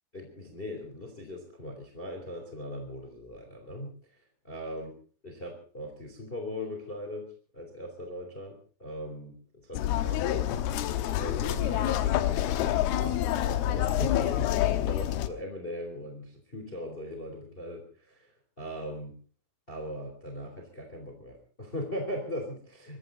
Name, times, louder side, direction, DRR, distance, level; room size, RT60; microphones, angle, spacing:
voice 1, 0.1-4.0 4.4-4.9 5.2-9.3 9.7-10.4 11.2-12.1 12.5-14.5 14.9-18.3 18.6-19.1 19.7-23.0, left 1 dB, 15° left, 3 dB, 3.2 m, -39 dB
sound 1, 9.7-15.3, left 12 dB, 75° left, 2.4 m, -27 dB
24.5 x 14.5 x 4.0 m, 0.41 s
omnidirectional pair, 5.7 m